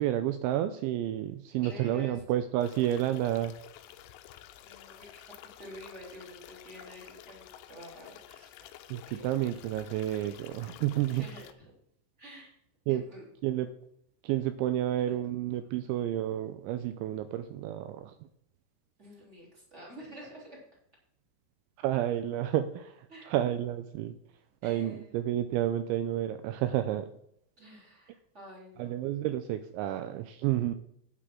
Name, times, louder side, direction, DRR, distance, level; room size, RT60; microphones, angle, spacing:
voice 1, 0.0-3.6 8.9-11.2 12.9-13.0 13.4-13.7 14.2-18.1 21.8-24.2 24.6-27.1 28.8-30.7, right 12 dB, 90° right, 10 dB, 2.6 m, -30 dB
voice 2, 1.6-2.2 4.6-8.7 9.1-9.3 10.7-10.8 11.1-11.7 12.2-12.5 12.9-13.2 15.1-15.2 19.0-20.6 23.1-23.3 24.6-25.2 27.6-29.1, equal, 15° right, -3 dB, 2.9 m, -49 dB
sound 1, 2.6-11.5, left 12 dB, 85° left, 3.2 m, -51 dB
11.5 x 9.7 x 3.7 m, 0.71 s
omnidirectional pair, 5.9 m